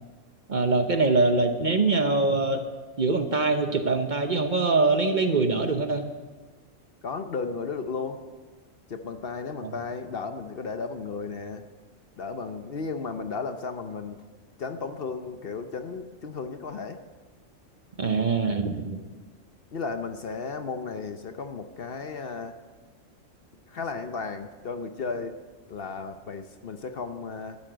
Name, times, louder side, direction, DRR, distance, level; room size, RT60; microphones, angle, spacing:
voice 1, 0.5-2.6 3.0-6.1 18.0-19.0, right 3 dB, 40° right, 6 dB, 0.9 m, -23 dB
voice 2, 7.0-8.2 8.9-11.6 12.2-14.2 14.6-17.0 19.7-22.5 23.7-25.4 25.7-27.6, left 4 dB, 55° left, 8 dB, 0.9 m, -34 dB
12.5 x 8.8 x 7.8 m, 1.3 s
omnidirectional pair, 1.3 m